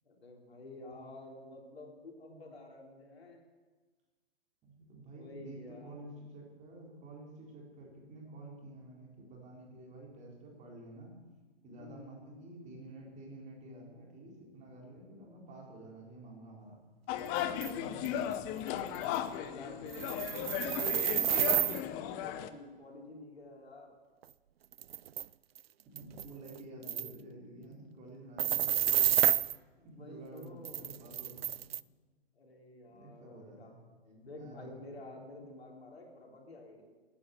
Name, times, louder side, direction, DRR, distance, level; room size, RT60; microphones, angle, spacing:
voice 1, 0.1-3.4 5.0-6.0 11.7-12.1 17.5-18.5 19.2-23.9 29.7-30.9 32.3-33.7 34.0-36.8, left 2 dB, 75° left, 0 dB, 4.0 m, -50 dB
voice 2, 4.6-11.2 11.6-16.8 17.5-18.6 25.9-29.3 29.8-31.5 32.9-33.8 34.4-34.7, right 2 dB, 25° right, -1 dB, 4.1 m, -50 dB
sound 1, 17.1-22.5, left 10 dB, 25° left, 0.9 m, -36 dB
sound 2, 17.6-17.7 18.1-18.2 18.7-18.8 19.0-19.2 19.9-21.8 24.2-24.3 24.7-25.3 25.6-25.7 26.0-26.6 26.9-27.1 28.4-29.6 30.7-31.8, right 11 dB, 70° right, 0.5 m, -30 dB
16.0 x 10.0 x 8.0 m, 1.3 s
figure-of-eight pair, 120°, 31 cm